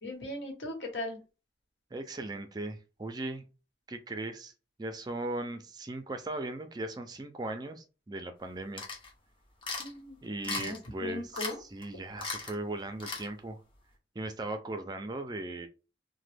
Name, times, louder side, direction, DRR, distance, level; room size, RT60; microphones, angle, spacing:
voice 1, 0.0-1.2 9.8-10.2 10.5-11.6, left 1 dB, 85° left, 1 dB, 1.1 m, -38 dB
voice 2, 1.9-3.4 3.9-4.5 4.8-8.8 10.2-13.6 14.2-15.7, right 2 dB, 25° right, 7 dB, 0.4 m, -38 dB
sound 1, 8.8-9.1 9.6-9.9 10.4-10.9 11.3-11.6 11.8-11.9 12.2-12.5 13.0-13.3, left 4 dB, 30° left, 0.7 m, -36 dB
2.9 x 2.1 x 3.3 m, 0.33 s
head